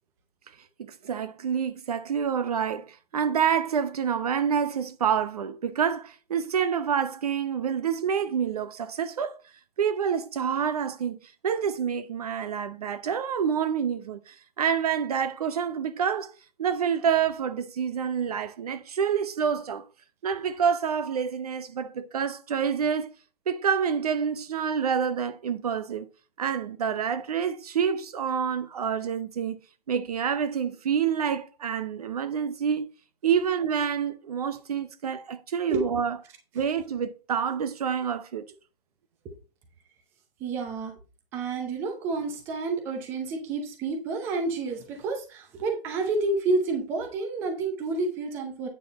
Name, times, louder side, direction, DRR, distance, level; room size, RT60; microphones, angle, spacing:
voice 1, 0.8-2.9 3.1-9.4 9.8-11.2 11.4-16.3 16.6-19.8 20.2-23.1 23.5-26.1 26.4-29.6 29.9-32.9 33.2-36.2 36.5-38.5, right 7 dB, 40° right, 0.8 m, -27 dB
voice 2, 40.4-40.9 41.3-48.7, right 3 dB, 10° right, 0.7 m, -29 dB
9.1 x 6.4 x 4.1 m
hypercardioid pair, 160°, 30 cm